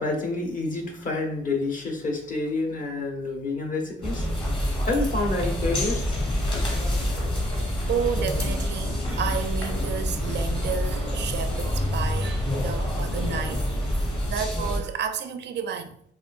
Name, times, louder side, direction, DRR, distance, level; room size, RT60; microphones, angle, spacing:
voice 1, 0.0-4.3 4.8-6.2, left 2 dB, 40° left, 1.2 m, -28 dB
sound 1, 4.0-14.8, left 1 dB, 25° left, 1.4 m, -27 dB
voice 2, 7.5-13.6 14.3-16.0, right 7 dB, 60° right, 0.4 m, -31 dB
5.3 x 2.5 x 2.5 m
cardioid pair, 90°, 20 cm